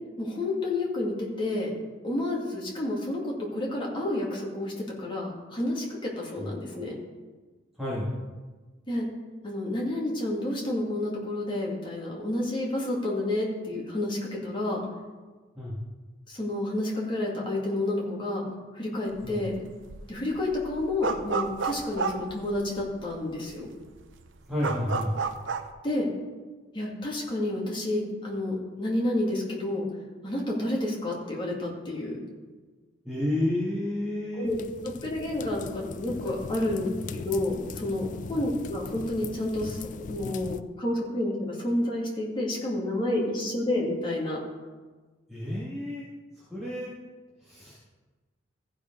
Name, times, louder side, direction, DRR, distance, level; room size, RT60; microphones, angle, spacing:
voice 1, 0.2-1.7 2.0-4.7 5.0-7.0 8.9-9.1 9.4-14.8 16.3-18.4 18.7-19.5 20.1-23.7 25.8-26.1 26.7-29.8 30.2-32.2 34.4-34.5 35.0-44.4, left 1 dB, 25° left, -3 dB, 2.2 m, -30 dB
voice 2, 7.8-8.1 15.6-15.8 19.2-19.4 24.5-25.1 33.0-34.5 45.3-46.1 46.4-46.9 47.4-47.8, left 1 dB, ahead, -9 dB, 2.1 m, -30 dB
sound 1, 19.2-19.5 19.8-23.0 23.5-23.6 23.8-25.7, right 5 dB, 70° right, 0.7 m, -31 dB
sound 2, 34.5-40.6, left 4 dB, 40° left, 0.4 m, -39 dB
15.0 x 5.0 x 5.3 m, 1.3 s
head